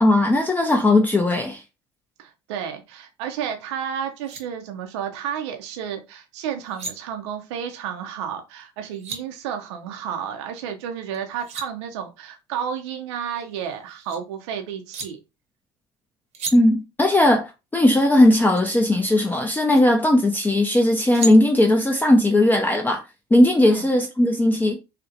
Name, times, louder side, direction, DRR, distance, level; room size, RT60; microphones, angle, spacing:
voice 1, 0.0-1.6 16.5-23.0 23.3-24.8, left 1 dB, 10° left, 0.4 m, -18 dB
voice 2, 2.2-15.2 23.7-23.9, right 8 dB, 80° right, 0.4 m, -31 dB
sound 1, 3.8-3.9 4.1-4.4 6.5-6.9 8.6-9.2 11.1-11.7 13.1-14.2 14.9-15.1 16.3-16.6 18.5-18.6 19.5-19.8 20.7-21.4, right 3 dB, 50° right, 0.7 m, -34 dB
2.4 x 2.0 x 2.6 m
hypercardioid pair, 70°, 15 cm